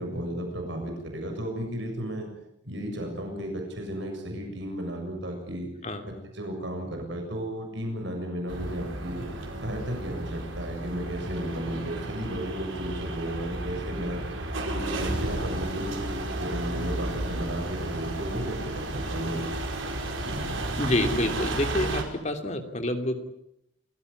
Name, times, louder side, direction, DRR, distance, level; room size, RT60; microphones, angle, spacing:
voice 1, 0.0-2.3 2.6-5.7 6.1-9.2 9.6-14.3 14.6-19.4, right 1 dB, 65° right, 3 dB, 7.2 m, -34 dB
sound 1, 8.5-22.0, right 1 dB, 90° right, 5.2 m, -33 dB
voice 2, 20.8-23.3, left 1 dB, 35° left, 6 dB, 2.9 m, -28 dB
28.5 x 16.5 x 9.6 m, 0.81 s
head